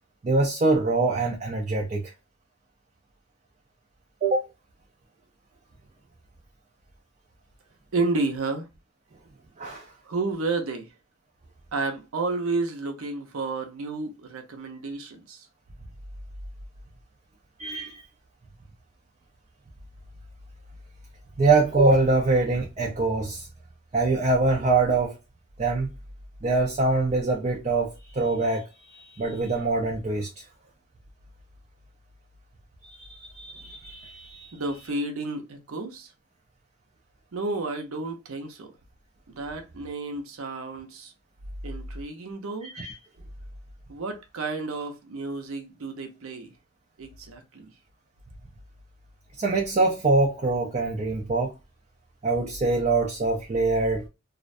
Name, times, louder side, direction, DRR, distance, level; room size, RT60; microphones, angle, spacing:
voice 1, 0.2-2.0 4.2-4.5 9.6-9.9 17.6-17.9 21.4-23.5 23.9-25.2 25.6-25.9 26.4-30.3 32.8-34.5 42.6-43.0 49.4-51.5 52.2-54.1, right 3 dB, 30° right, 0.4 m, -24 dB
voice 2, 7.9-8.7 10.0-10.9 11.7-15.5 34.5-36.1 37.3-38.7 39.3-41.1 41.6-42.7 43.9-46.5 47.0-47.7, right 3 dB, 70° right, 0.6 m, -31 dB
2.4 x 2.1 x 2.5 m
head